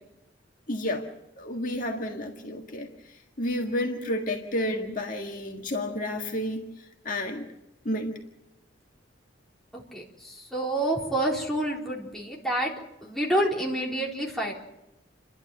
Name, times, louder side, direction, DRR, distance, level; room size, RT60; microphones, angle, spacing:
voice 1, 0.7-1.1 1.4-2.9 3.4-6.6 7.1-7.4 7.9-8.1, left 1 dB, 45° left, 1 dB, 1.8 m, -30 dB
voice 2, 9.7-12.7 13.0-14.5, right 1 dB, ahead, -3 dB, 4.0 m, -28 dB
29.5 x 11.5 x 9.1 m, 0.91 s
head